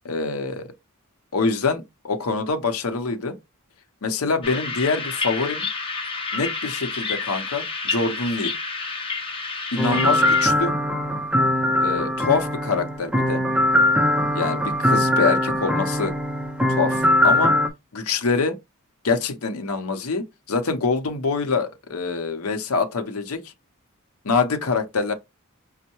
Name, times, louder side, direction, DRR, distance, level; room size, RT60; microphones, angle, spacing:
voice 1, 0.0-0.7 1.3-3.3 4.0-5.7 6.3-8.5 9.7-10.7 11.8-13.4 14.3-16.1 16.7-17.5 17.9-18.6 19.0-23.5 24.2-25.1, left 4 dB, 75° left, 0.7 m, -25 dB
sound 1, 4.4-10.5, left 4 dB, 25° left, 0.9 m, -29 dB
sound 2, 9.8-17.7, left 1 dB, 5° right, 0.4 m, -21 dB
5.3 x 2.1 x 2.9 m
head